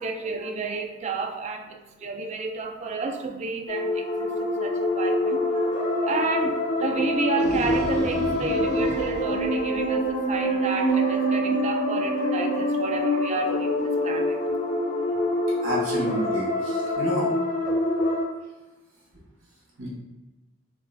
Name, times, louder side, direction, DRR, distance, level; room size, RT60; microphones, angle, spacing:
voice 1, 0.0-14.4, right 4 dB, 35° right, 5 dB, 0.3 m, -31 dB
sound 1, 3.7-18.2, left 1 dB, 40° left, 0.5 m, -25 dB
sound 2, 7.2-10.3, equal, 55° right, 0.8 m, -34 dB
voice 2, 15.6-17.3 19.8-19.9, right 1 dB, 75° right, -6 dB, 1.3 m, -29 dB
4.1 x 2.3 x 2.6 m, 1.1 s
head